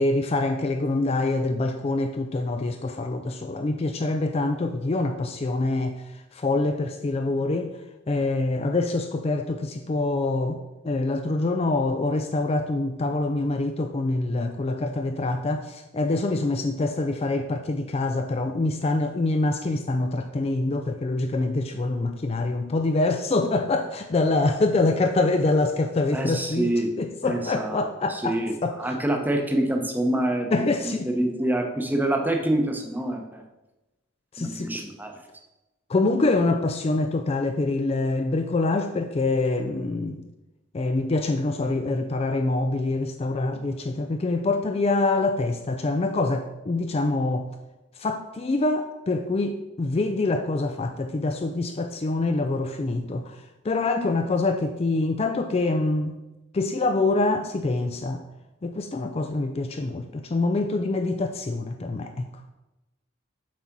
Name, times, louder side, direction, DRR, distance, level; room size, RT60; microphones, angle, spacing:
voice 1, 0.0-6.0 6.3-7.7 8.1-10.6 10.8-26.7 27.0-28.4 28.6-28.8 30.5-31.1 34.3-34.7 35.9-40.2 40.7-47.5 48.0-53.4 53.6-56.1 56.5-58.2 58.6-62.3, left 2 dB, 30° left, 6 dB, 0.4 m, -25 dB
voice 2, 26.1-26.9 27.2-30.5 30.8-33.4 34.4-35.2, right 1 dB, 10° right, 3 dB, 0.8 m, -26 dB
7.4 x 4.1 x 5.9 m, 1.0 s
head